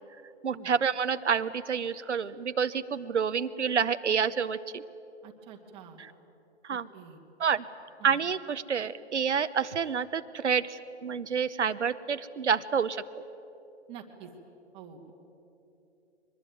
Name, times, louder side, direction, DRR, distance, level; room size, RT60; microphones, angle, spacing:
voice 1, 0.4-4.8 6.6-6.9 7.4-7.6 8.0-13.0, right 6 dB, 90° right, 11 dB, 1.0 m, -28 dB
voice 2, 5.2-6.0 6.7-7.2 8.0-8.2 13.9-14.3 14.7-15.1, right 8 dB, 15° right, 2 dB, 1.8 m, -47 dB
23.0 x 20.5 x 9.2 m, 2.9 s
hypercardioid pair, 150°, 34 cm